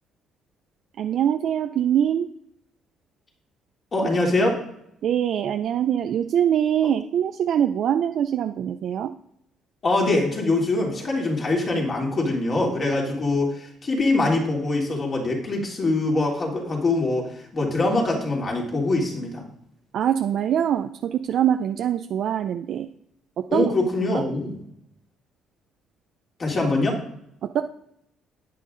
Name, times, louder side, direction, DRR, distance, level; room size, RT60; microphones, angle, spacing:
voice 1, 1.0-2.3 5.0-9.1 19.9-22.9 23.4-23.7 24.1-24.2 27.4-27.6, right 9 dB, 65° right, 7 dB, 0.4 m, -23 dB
voice 2, 3.9-4.6 9.8-19.4 23.5-24.6 26.4-27.0, left 2 dB, 40° left, -1 dB, 3.2 m, -23 dB
9.5 x 9.3 x 3.9 m, 0.77 s
cardioid pair, 95°, 0 cm